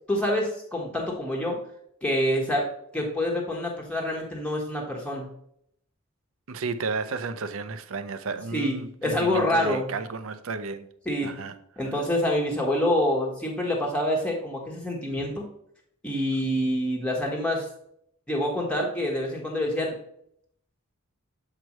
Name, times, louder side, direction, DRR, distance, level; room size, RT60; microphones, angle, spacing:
voice 1, 0.1-1.6 2.0-2.7 2.9-5.3 8.5-9.9 11.1-11.3 11.8-15.4 16.0-17.7 18.3-19.9, left 1 dB, 5° left, 1.3 m, -26 dB
voice 2, 6.5-10.9 11.2-11.5 11.8-12.0, right 4 dB, 70° right, 0.6 m, -33 dB
7.6 x 4.6 x 3.0 m
head